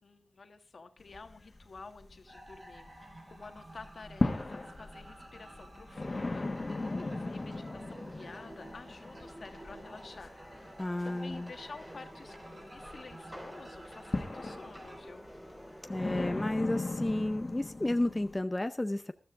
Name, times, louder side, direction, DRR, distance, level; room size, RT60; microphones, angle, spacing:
voice 1, 0.0-10.4 10.6-10.8 11.0-15.3, left 4 dB, 65° left, 7 dB, 1.5 m, -50 dB
sound 1, 1.0-3.2 3.5-18.4, left 2 dB, 40° left, 1.9 m, -38 dB
sound 2, 2.3-15.0, right 1 dB, 45° right, 4.1 m, -52 dB
sound 3, 6.0-16.0, equal, 10° right, 4.4 m, -51 dB
voice 2, 10.8-11.5 15.9-19.1, left 1 dB, 20° left, 9 dB, 0.6 m, -32 dB
14.0 x 13.0 x 3.7 m, 0.36 s
wide cardioid pair, 75°, 0 cm